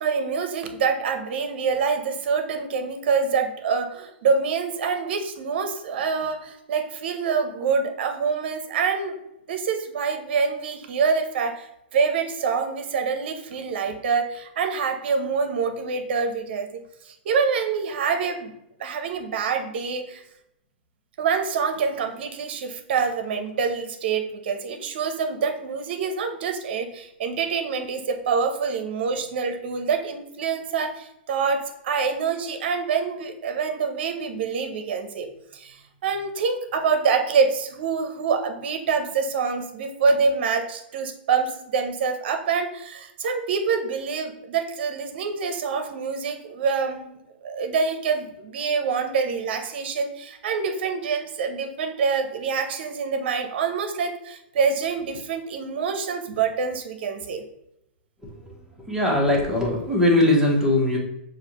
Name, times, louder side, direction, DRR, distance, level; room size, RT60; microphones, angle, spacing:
voice 1, 0.0-9.2 9.5-18.5 18.8-20.2 21.2-35.3 35.5-47.2 47.4-57.4, right 5 dB, 65° right, 7 dB, 0.7 m, -26 dB
voice 2, 58.9-61.0, left 1 dB, 5° right, -3 dB, 1.3 m, -20 dB
6.5 x 2.5 x 3.0 m, 0.83 s
hypercardioid pair, 120°, 6 cm